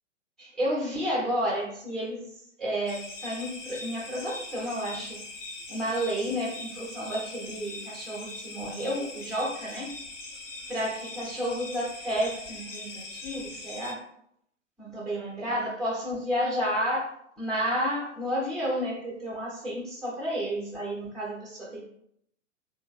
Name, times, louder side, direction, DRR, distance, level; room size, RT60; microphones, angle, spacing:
voice 1, 0.4-5.2 5.7-10.0 10.7-14.1 14.8-21.9, equal, ahead, -4 dB, 0.6 m, -31 dB
sound 1, 2.9-13.9, left 2 dB, 70° left, 1.1 m, -41 dB
6.1 x 2.1 x 2.4 m, 0.72 s
figure-of-eight pair, 105°, 37 cm